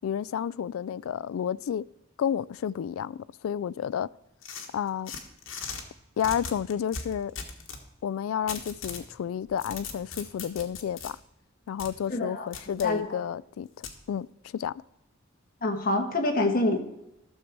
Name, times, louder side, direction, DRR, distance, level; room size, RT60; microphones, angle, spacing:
voice 1, 0.0-1.8 2.2-4.1 4.7-5.1 6.2-7.3 8.0-11.2 11.7-14.3 14.5-14.8, left 8 dB, 90° left, 0.3 m, -31 dB
sound 1, 4.4-5.8 6.2-7.8 8.5-9.1 9.5-11.1 11.8-11.9 12.5-12.9 13.8-14.0, left 5 dB, 70° left, 1.5 m, -38 dB
voice 2, 12.1-13.2 15.6-16.8, left 2 dB, 45° left, 1.4 m, -27 dB
14.0 x 6.6 x 4.6 m
head